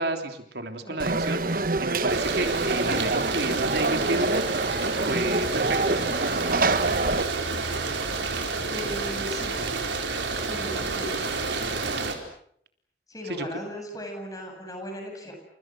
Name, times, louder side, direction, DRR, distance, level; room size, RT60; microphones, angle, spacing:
voice 1, 0.0-4.4 5.1-6.0 13.2-13.6, right 2 dB, 65° right, 6 dB, 3.4 m, -31 dB
voice 2, 0.7-1.1 8.7-9.6 10.4-11.2 11.6-11.8 13.1-15.4, equal, 20° left, 3 dB, 7.6 m, -37 dB
Conversation / Crowd, 1.0-7.2, right 3 dB, 50° right, 1.2 m, -26 dB
sound 1, 2.1-12.1, right 3 dB, 85° right, 4.6 m, -29 dB
29.5 x 28.5 x 6.3 m, 0.66 s
head